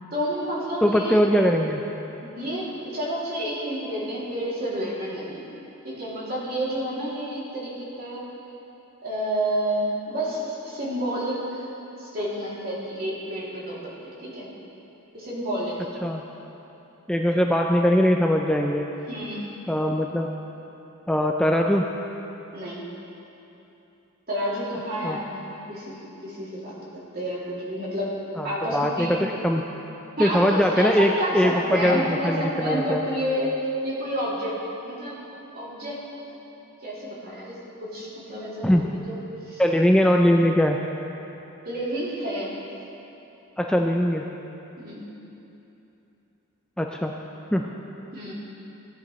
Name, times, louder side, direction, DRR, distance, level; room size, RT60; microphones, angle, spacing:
voice 1, 0.1-1.2 2.2-5.5 5.8-8.3 9.0-11.7 12.0-13.8 14.0-14.5 15.1-15.9 19.1-19.4 22.5-22.8 24.3-28.1 28.4-29.2 30.2-35.2 35.5-36.0 36.8-39.2 39.4-39.6 41.6-42.5 44.8-45.0 48.1-48.3, equal, 45° right, -7 dB, 2.7 m, -30 dB
voice 2, 0.8-1.8 16.0-16.2 17.1-18.9 19.7-20.3 21.1-21.8 25.0-25.2 28.4-29.6 30.2-33.0 38.6-38.9 39.6-40.8 43.6-44.2 46.8-47.1 47.5-47.6, equal, 5° left, 1 dB, 0.3 m, -21 dB
16.0 x 10.0 x 3.1 m, 3.0 s
head